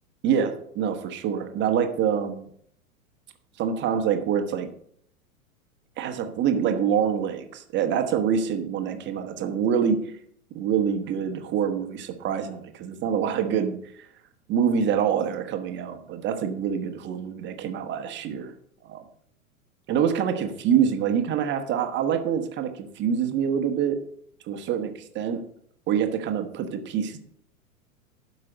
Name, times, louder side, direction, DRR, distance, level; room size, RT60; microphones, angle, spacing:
voice 1, 0.2-2.5 3.6-4.7 6.0-10.1 10.5-14.1 14.5-18.5 18.9-19.0 19.9-24.0 24.5-25.4 25.9-27.2, right 8 dB, 25° right, 6 dB, 1.3 m, -26 dB
12.5 x 5.5 x 5.3 m, 0.66 s
figure-of-eight pair, 100°, 43 cm